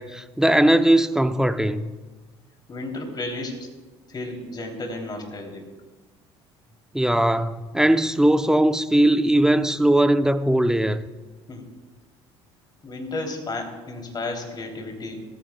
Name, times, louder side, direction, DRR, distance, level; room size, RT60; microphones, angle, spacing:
voice 1, 0.0-1.9 6.9-11.0, right 1 dB, 5° right, 0.7 m, -19 dB
voice 2, 2.7-3.7 4.1-5.6 11.5-11.6 12.8-15.2, left 2 dB, 30° left, 3.2 m, -33 dB
18.0 x 15.0 x 2.3 m
hypercardioid pair, 65°, 14 cm